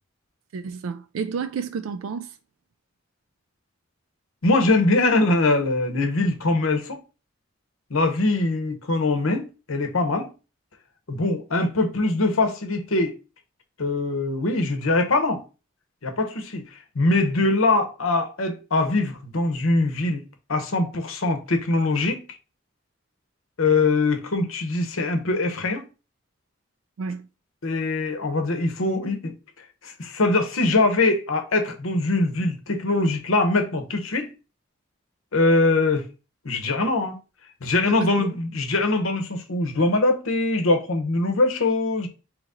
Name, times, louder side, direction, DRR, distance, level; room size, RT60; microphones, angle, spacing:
voice 1, 0.5-2.3 27.0-27.3 37.8-38.3, right 6 dB, 80° right, 0.4 m, -31 dB
voice 2, 4.4-7.0 7.9-10.3 11.1-13.1 13.8-15.4 16.0-16.6 16.9-20.2 20.5-22.2 23.6-25.8 27.6-29.3 29.8-34.3 35.3-36.0 36.4-37.2 37.6-42.1, left 2 dB, 90° left, 0.9 m, -22 dB
3.9 x 3.1 x 3.7 m
head